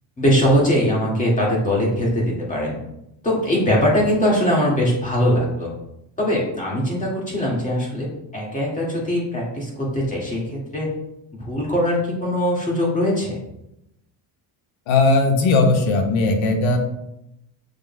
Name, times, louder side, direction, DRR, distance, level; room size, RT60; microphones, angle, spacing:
voice 1, 0.2-2.8 3.2-5.7 6.2-8.1 8.3-10.9 11.4-13.4, equal, 15° left, -4 dB, 2.0 m, -21 dB
voice 2, 14.9-16.8, left 3 dB, 80° left, 4 dB, 1.3 m, -18 dB
6.8 x 6.6 x 2.2 m, 0.84 s
cardioid pair, 140°, 46 cm